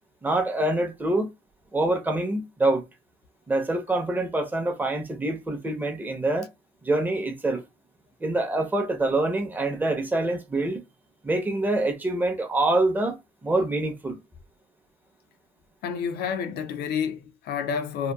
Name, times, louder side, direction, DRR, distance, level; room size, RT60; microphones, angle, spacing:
voice 1, 0.2-1.3 1.7-2.8 3.5-6.5 6.8-7.6 8.2-10.8 11.2-13.2 13.4-14.2, right 2 dB, 10° right, 0.6 m, -25 dB
voice 2, 15.8-18.1, left 7 dB, 70° left, 0.4 m, -29 dB
2.8 x 2.2 x 2.2 m
cardioid pair, 110°, 17 cm